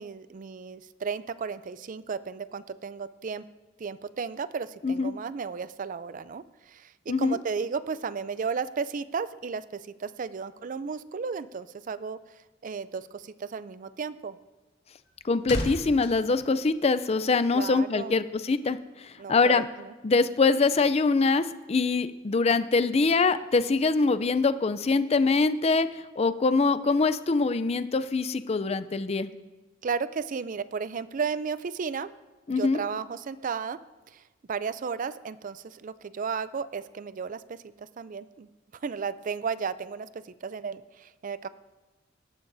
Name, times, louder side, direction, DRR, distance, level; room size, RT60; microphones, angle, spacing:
voice 1, 0.0-3.4 3.8-12.2 12.6-14.4 17.5-18.2 19.2-19.9 29.8-32.1 32.5-33.8 34.1-34.2 34.5-38.5 38.8-41.5, right 5 dB, 45° right, 15 dB, 0.4 m, -34 dB
sound 1, 14.7-17.4 17.7-17.9, left 1 dB, 60° left, 1.7 m, -37 dB
voice 2, 15.2-19.7 20.0-25.9 26.2-29.3 32.5-32.8, left 4 dB, 30° left, 12 dB, 0.4 m, -24 dB
17.5 x 12.0 x 2.7 m, 1.2 s
head